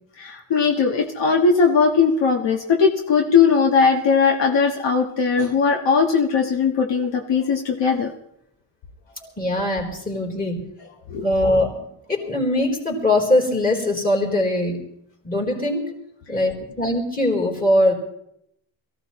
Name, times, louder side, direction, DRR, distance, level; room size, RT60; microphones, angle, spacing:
voice 1, 0.2-8.1 11.1-11.2, left 5 dB, 65° left, 0 dB, 1.7 m, -19 dB
voice 2, 9.4-10.7 11.2-11.8 12.1-14.8 15.2-15.8 16.3-17.9, left 1 dB, 20° left, 0 dB, 4.2 m, -21 dB
23.0 x 15.5 x 3.2 m, 0.76 s
cardioid pair, 135°, 46 cm